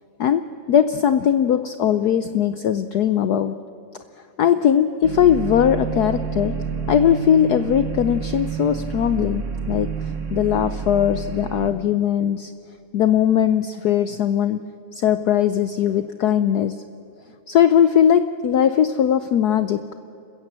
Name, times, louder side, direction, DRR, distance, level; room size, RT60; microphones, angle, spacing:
voice 1, 0.2-3.6 4.4-6.6 6.9-12.5 12.9-14.6 14.9-16.8 17.5-19.9, left 9 dB, 80° left, 11 dB, 0.8 m, -19 dB
sound 1, 5.0-11.7, right 6 dB, 45° right, 1.1 m, -29 dB
27.5 x 15.5 x 7.5 m, 2.8 s
omnidirectional pair, 2.4 m